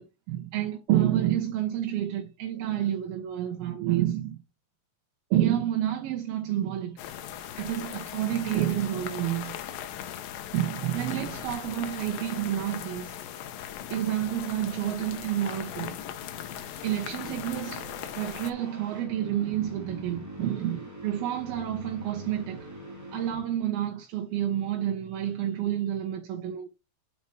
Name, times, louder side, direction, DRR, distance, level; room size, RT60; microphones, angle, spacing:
voice 1, 0.0-4.4 5.3-7.0 7.6-9.6 10.5-13.2 13.9-16.0 16.8-17.9 18.2-22.7 23.1-26.7, right 12 dB, 85° right, 3.0 m, -29 dB
sound 1, 7.0-18.5, left 10 dB, 75° left, 2.5 m, -39 dB
sound 2, 16.0-23.8, equal, 10° right, 0.8 m, -44 dB
9.2 x 4.2 x 4.9 m
omnidirectional pair, 4.3 m